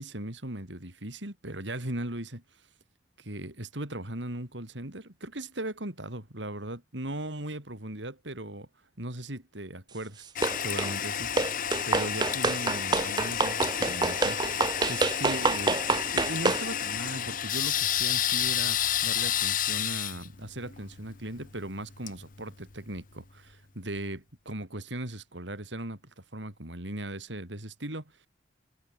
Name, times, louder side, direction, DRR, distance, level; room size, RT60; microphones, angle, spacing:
voice 1, 0.0-2.4 3.2-8.7 9.0-10.3 10.6-11.5 11.9-14.6 14.9-15.8 16.1-28.3, right 1 dB, 90° right, 5.3 m, -38 dB
Toilet flush, 10.4-23.0, left 10 dB, 50° left, 1.1 m, -31 dB
sound 1, 10.4-10.9 11.4-16.7, right 3 dB, 25° right, 0.6 m, -27 dB
head